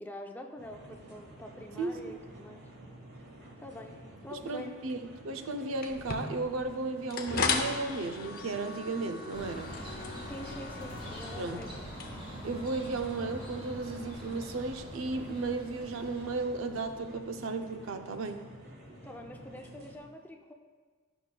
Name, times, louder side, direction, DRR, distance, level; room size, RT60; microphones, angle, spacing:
voice 1, 0.0-2.6 3.6-4.0 4.2-4.7 10.3-11.9 19.0-20.5, equal, 10° left, 2 dB, 0.5 m, -45 dB
sound 1, 0.6-20.0, right 1 dB, 55° right, 1.4 m, -51 dB
voice 2, 1.8-2.2 4.3-5.0 5.2-9.8 11.4-11.6 12.4-18.5, right 3 dB, 85° right, 7 dB, 0.5 m, -35 dB
sound 2, 5.8-13.7, left 4 dB, 45° left, 0.7 m, -38 dB
sound 3, 9.3-17.4, equal, 25° right, 1.8 m, -44 dB
12.0 x 5.9 x 2.2 m, 1.5 s
head